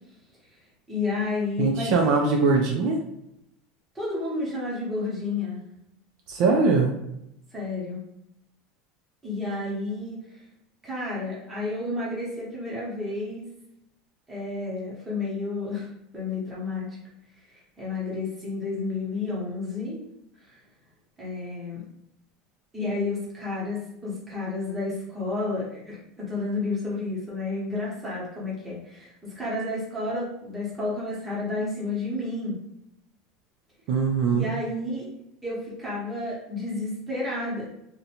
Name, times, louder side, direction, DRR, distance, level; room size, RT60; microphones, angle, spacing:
voice 1, 0.9-2.4 3.9-5.6 7.5-8.0 9.2-10.2 10.8-13.4 14.3-15.9 16.1-17.0 17.5-20.0 20.4-20.6 21.2-21.8 22.7-32.6 34.2-35.1 35.4-37.7, left 2 dB, 10° right, -6 dB, 0.8 m, -31 dB
voice 2, 1.6-3.0 6.3-6.9 33.9-34.5, right 4 dB, 55° right, 1 dB, 0.4 m, -21 dB
2.5 x 2.1 x 2.8 m, 0.81 s
cardioid pair, 170°, 0 cm